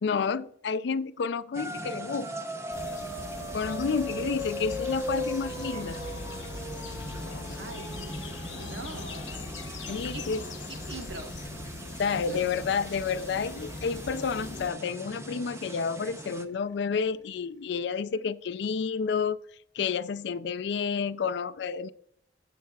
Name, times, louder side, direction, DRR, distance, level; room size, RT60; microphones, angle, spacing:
voice 1, 0.0-2.3 3.5-6.0 9.9-10.4 12.0-19.4 19.7-21.9, left 5 dB, 65° left, 0.4 m, -30 dB
sound 1, 1.5-16.4, equal, 15° right, 0.6 m, -39 dB
sound 2, 2.7-14.7, left 3 dB, 85° left, 0.9 m, -41 dB
sound 3, 3.9-17.8, left 2 dB, 20° left, 1.1 m, -55 dB
voice 2, 7.6-8.2 8.5-9.6 9.9-10.3 10.7-11.4 12.1-12.6, right 3 dB, 70° right, 1.3 m, -44 dB
12.5 x 7.5 x 2.3 m
head